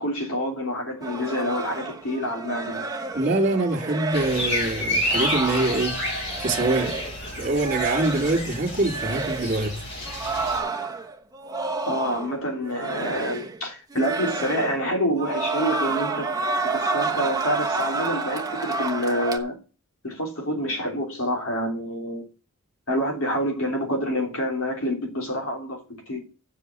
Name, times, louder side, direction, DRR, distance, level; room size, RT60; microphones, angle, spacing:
voice 1, 0.0-2.8 11.6-16.3 16.6-19.6 20.0-22.2 22.9-26.2, equal, 70° left, 3.2 m, -27 dB
sound 1, 1.0-7.2 7.5-8.5 8.8-9.6 10.0-12.4 12.7-13.6 13.9-14.9 15.1-19.4, right 3 dB, 15° right, 1.1 m, -30 dB
voice 2, 3.1-6.0 6.4-7.0 7.4-9.8, right 2 dB, 40° right, 2.6 m, -24 dB
sound 2, 4.1-10.6, left 1 dB, 50° left, 4.3 m, -30 dB
7.6 x 7.0 x 7.7 m
head